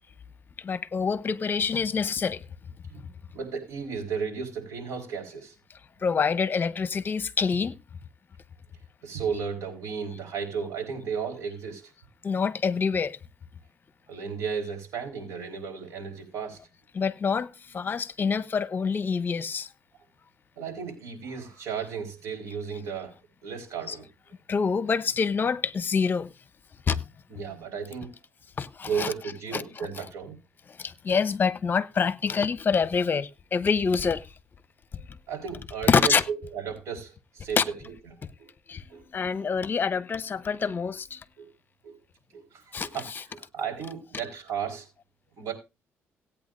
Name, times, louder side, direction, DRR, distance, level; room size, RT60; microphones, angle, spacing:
voice 1, 0.6-2.4 6.0-7.8 12.2-13.2 16.9-19.7 23.9-24.0 24.5-26.3 26.9-27.0 28.6-29.1 29.5-29.6 30.0-30.1 30.8-34.3 35.9-36.2 37.6-37.7 38.7-38.8 39.1-41.2 42.7-43.2, left 5 dB, 40° left, 0.9 m, -26 dB
voice 2, 3.3-5.5 9.0-11.9 14.1-16.6 20.6-23.2 23.4-24.1 27.3-28.1 28.9-30.4 35.3-37.9 38.4-38.5 38.9-39.0 39.4-39.5 41.4-41.5 41.8-42.0 42.3-44.9 45.4-45.5, right 6 dB, 70° right, 4.9 m, -34 dB
18.0 x 8.8 x 2.6 m
cardioid pair, 90°, 5 cm